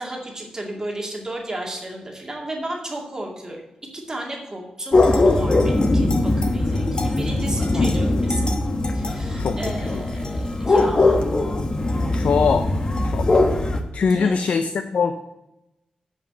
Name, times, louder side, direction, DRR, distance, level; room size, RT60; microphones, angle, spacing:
voice 1, 0.0-3.6 3.9-8.5 8.9-11.3 14.0-14.4, right 1 dB, 25° right, 0 dB, 2.2 m, -33 dB
sound 1, 4.9-13.8, left 2 dB, 35° left, 1.1 m, -20 dB
voice 2, 9.4-10.0 12.1-12.7 13.0-13.3 13.9-15.2, left 5 dB, 75° left, 9 dB, 0.5 m, -22 dB
8.3 x 5.4 x 7.5 m, 0.92 s
wide cardioid pair, 100°, 2 cm